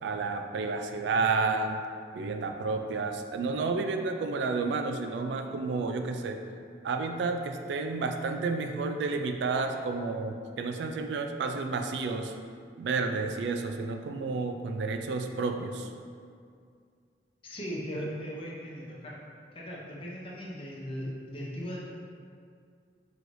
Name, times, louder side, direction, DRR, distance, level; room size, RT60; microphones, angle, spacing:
voice 1, 0.0-1.8 2.1-6.5 6.8-12.3 12.8-15.9, right 4 dB, 80° right, 5 dB, 0.3 m, -31 dB
voice 2, 17.4-19.2 19.5-21.8, equal, 30° left, -5 dB, 0.6 m, -38 dB
4.7 x 3.1 x 2.6 m, 2.2 s
head